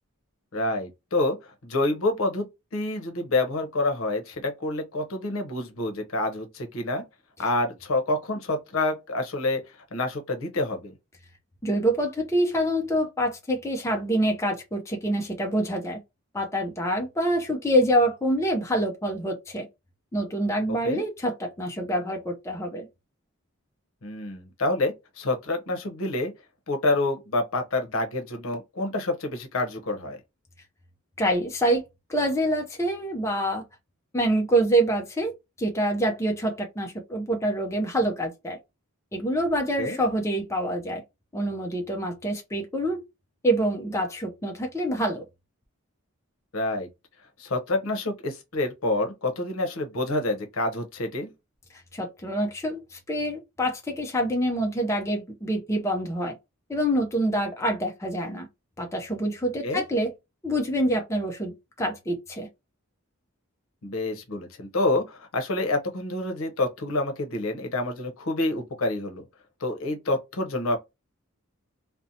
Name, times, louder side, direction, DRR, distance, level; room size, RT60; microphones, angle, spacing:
voice 1, 0.5-2.5 2.7-7.0 7.4-9.6 9.9-10.9 20.8-21.0 24.0-26.3 26.7-30.2 39.8-40.0 46.5-46.9 47.4-51.3 59.6-59.8 63.8-69.2 69.6-70.8, left 2 dB, 75° left, 0.7 m, -27 dB
voice 2, 11.6-16.0 16.3-19.6 20.1-22.9 31.2-31.8 32.1-33.6 34.1-35.3 35.6-38.6 39.1-41.0 41.3-43.0 43.4-45.2 51.7-56.3 56.7-58.5 58.8-60.1 60.4-62.5, right 1 dB, 15° left, 0.4 m, -26 dB
2.6 x 2.0 x 2.6 m
head